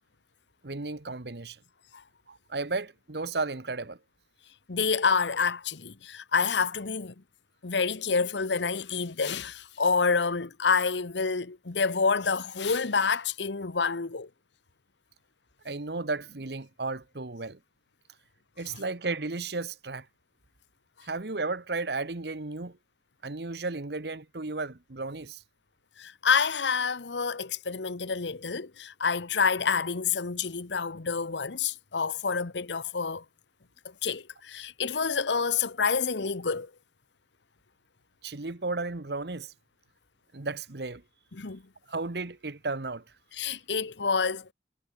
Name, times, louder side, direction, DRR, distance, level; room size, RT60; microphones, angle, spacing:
voice 1, 0.6-1.6 2.3-4.0 15.6-17.6 18.6-20.1 21.0-22.8 23.2-25.4 38.2-39.5 40.3-41.0 41.9-43.0, right 3 dB, 70° right, 1.2 m, -34 dB
voice 2, 4.7-7.1 7.6-14.3 26.0-33.2 34.0-36.7 41.3-41.6 43.3-44.5, left 5 dB, 90° left, 1.0 m, -28 dB
head